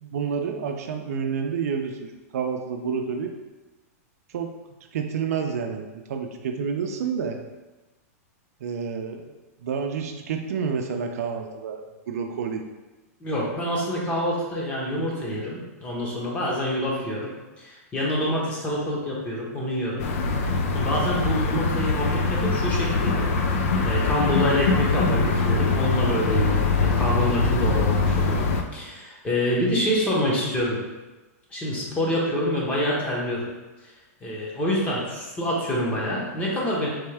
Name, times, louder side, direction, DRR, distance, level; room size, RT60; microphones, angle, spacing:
voice 1, 0.0-3.3 4.3-4.5 4.9-7.4 8.6-12.6, right 6 dB, 75° right, 4 dB, 0.5 m, -29 dB
voice 2, 13.2-17.3 17.6-20.0 20.7-30.8 31.5-33.5 34.2-36.9, equal, 15° left, -4 dB, 0.9 m, -27 dB
sound 1, 20.0-28.6, left 3 dB, 60° left, 0.5 m, -23 dB
3.5 x 3.3 x 3.4 m, 1.1 s
supercardioid pair, 155°, 8 cm